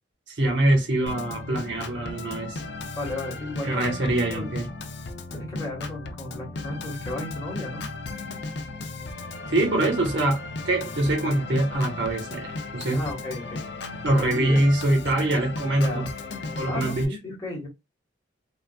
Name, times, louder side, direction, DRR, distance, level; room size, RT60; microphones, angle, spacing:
voice 1, 0.3-2.6 3.6-4.7 9.5-13.0 14.0-16.1 16.5-17.1, right 1 dB, 70° right, 1.1 m, -24 dB
Organ, 1.1-17.1, left 3 dB, 60° left, 0.5 m, -36 dB
voice 2, 3.0-4.5 5.3-7.9 12.9-13.7 14.2-14.6 15.8-16.1 16.6-17.7, left 2 dB, 15° left, 1.1 m, -34 dB
3.6 x 2.3 x 2.2 m
head